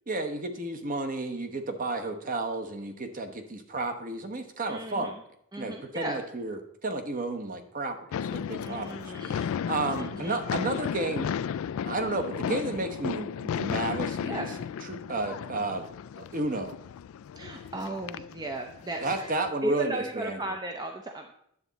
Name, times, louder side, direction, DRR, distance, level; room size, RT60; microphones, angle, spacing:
voice 1, 0.1-5.1 5.6-8.9 9.3-11.3 11.8-14.5 14.9-15.8 16.2-16.8 19.0-20.4, right 2 dB, 40° right, 7 dB, 0.9 m, -32 dB
voice 2, 4.7-5.1 5.5-6.2 8.6-9.4 10.0-10.4 14.2-14.5 17.4-19.3 19.6-21.3, right 1 dB, 20° right, 4 dB, 0.6 m, -35 dB
sound 1, 8.1-19.5, left 8 dB, 70° left, 0.3 m, -34 dB
9.8 x 7.3 x 4.0 m, 0.72 s
head